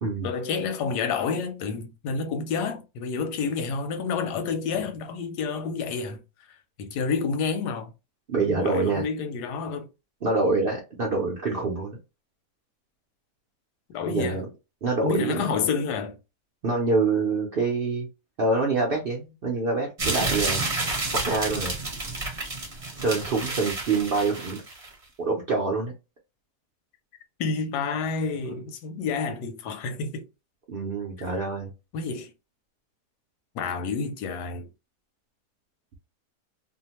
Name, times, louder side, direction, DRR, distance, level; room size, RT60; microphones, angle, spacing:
voice 1, 0.2-7.9 8.4-9.9 13.9-14.4 15.0-16.2 27.4-30.2 31.9-32.3 33.5-34.7, left 5 dB, 90° left, 1.2 m, -29 dB
voice 2, 8.3-9.0 10.2-12.0 14.1-14.4 14.8-15.4 16.6-18.1 18.4-20.6 21.2-21.7 23.0-24.6 25.2-25.9 30.7-31.7, right 3 dB, 70° right, 0.5 m, -26 dB
sound 1, 20.0-24.9, right 2 dB, 30° right, 0.7 m, -30 dB
2.7 x 2.1 x 2.8 m
omnidirectional pair, 1.7 m